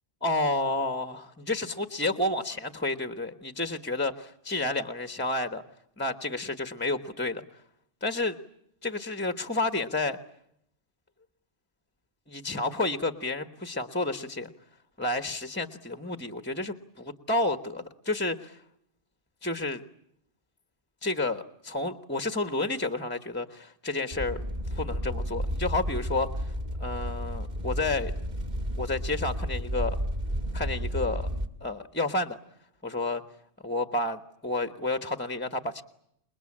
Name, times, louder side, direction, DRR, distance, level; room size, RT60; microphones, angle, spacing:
voice 1, 0.2-5.6 6.0-7.4 8.0-8.4 8.8-10.2 12.3-14.5 15.0-18.6 19.4-19.8 21.0-24.4 24.7-26.5 26.8-28.1 28.8-30.0 30.5-31.3 31.6-32.4 32.8-33.2 33.6-35.8, left 2 dB, 10° left, 9 dB, 1.2 m, -30 dB
sound 1, 24.1-31.5, equal, 45° right, 1.9 m, -32 dB
27.5 x 21.5 x 8.7 m, 0.74 s
omnidirectional pair, 1.1 m